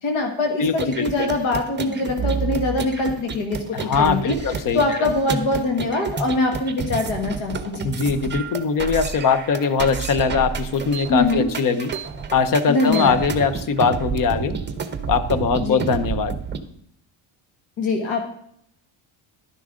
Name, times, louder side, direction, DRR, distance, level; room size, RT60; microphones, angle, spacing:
voice 1, 0.0-4.4 4.7-7.8 11.1-11.5 12.7-13.2 15.6-15.8 17.8-18.3, left 2 dB, 70° left, 3 dB, 1.8 m, -23 dB
voice 2, 0.6-1.3 3.7-4.8 7.8-11.9 12.3-14.6 15.1-16.4, left 5 dB, 40° left, 12 dB, 0.9 m, -21 dB
sound 1, 0.7-16.6, right 6 dB, 20° right, 0.8 m, -30 dB
11.5 x 9.9 x 3.7 m, 0.70 s
cardioid pair, 160°, 48 cm